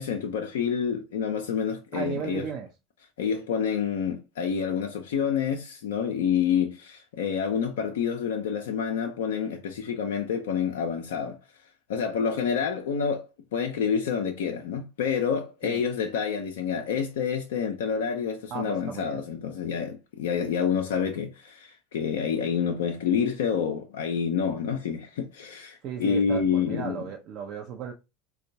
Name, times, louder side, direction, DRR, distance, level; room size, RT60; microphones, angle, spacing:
voice 1, 0.0-2.5 3.2-11.4 11.9-27.1, left 7 dB, 70° left, 0.4 m, -28 dB
voice 2, 1.9-2.7 15.6-15.8 18.5-19.2 25.8-27.9, right 6 dB, 50° right, 0.5 m, -35 dB
4.3 x 2.2 x 2.6 m
figure-of-eight pair, 75°, 0 cm